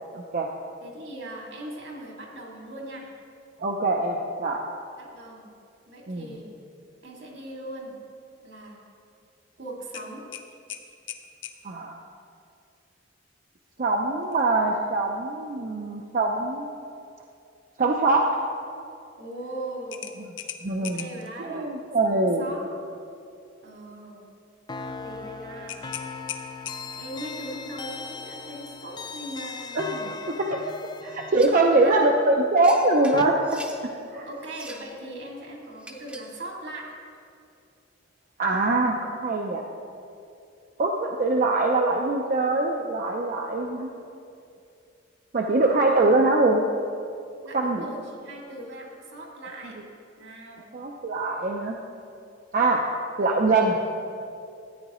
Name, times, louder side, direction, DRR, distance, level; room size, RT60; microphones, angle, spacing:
voice 1, 0.1-0.5 3.6-4.6 6.1-6.3 11.6-12.0 13.8-16.8 17.8-18.3 20.2-20.3 20.6-21.1 21.4-22.4 29.7-30.7 31.0-33.6 34.1-34.3 38.4-39.6 40.8-43.9 45.3-46.6 47.5-47.8 49.6-49.7 50.7-51.8 52.5-52.8 53.2-53.8, right 2 dB, 45° right, 1 dB, 0.5 m, -23 dB
voice 2, 0.8-3.1 5.0-5.5 5.9-6.5 7.0-7.9 8.4-8.8 9.6-10.2 19.2-20.1 20.8-21.7 22.0-22.6 23.6-24.3 24.8-25.8 27.0-29.8 31.8-32.1 34.3-36.9 47.4-49.8 50.2-50.7, right 1 dB, 75° right, -2 dB, 2.2 m, -39 dB
sound 1, 9.9-11.6 14.2-14.5 14.9-15.0 19.9-21.3 25.7-27.1, left 9 dB, 80° left, 0.6 m, -38 dB
sound 2, 24.7-33.3, left 4 dB, 25° left, 0.3 m, -38 dB
sound 3, 31.3-31.7 32.6-33.8 34.4-34.9 35.8-36.4, right 1 dB, 5° right, 0.7 m, -43 dB
13.5 x 9.4 x 3.0 m, 2.5 s
head